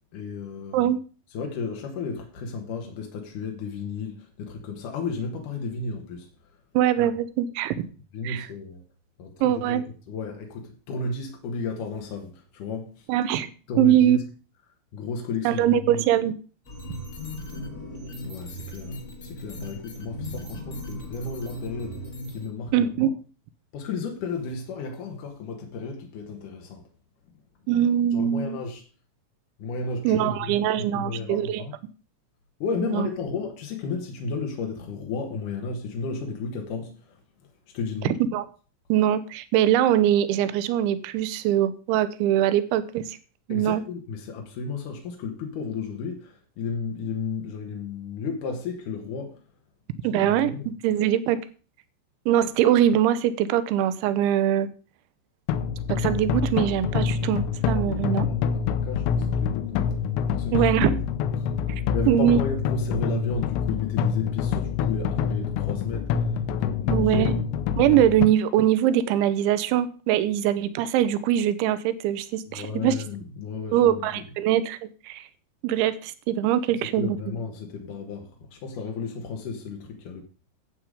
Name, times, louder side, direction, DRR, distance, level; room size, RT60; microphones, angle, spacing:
voice 1, 0.1-0.9 1.3-6.3 7.0-7.1 8.1-8.8 9.2-13.1 13.7-14.2 14.9-16.0 18.2-23.1 23.7-26.8 28.1-28.8 29.6-31.7 32.6-38.2 43.5-49.4 50.1-50.7 57.7-60.0 60.3-61.0 61.4-67.4 72.5-74.2 77.0-80.2, left 4 dB, 65° left, 2.1 m, -33 dB
voice 2, 6.7-7.9 8.2-8.5 9.4-9.8 13.1-13.5 13.8-14.2 15.5-16.4 22.7-23.1 27.7-28.6 30.0-31.6 32.9-33.1 38.1-38.4 38.9-43.2 43.5-43.8 50.0-51.4 52.3-54.7 55.9-58.3 60.5-61.0 62.1-62.4 66.9-67.3 67.8-72.9 73.7-74.8 75.0-75.3 75.6-77.2, right 11 dB, 80° right, 2.9 m, -22 dB
sound 1, 16.6-22.5, left 1 dB, 40° left, 1.2 m, -37 dB
sound 2, 55.5-68.3, left 7 dB, 85° left, 3.4 m, -26 dB
12.0 x 8.2 x 5.0 m
omnidirectional pair, 5.8 m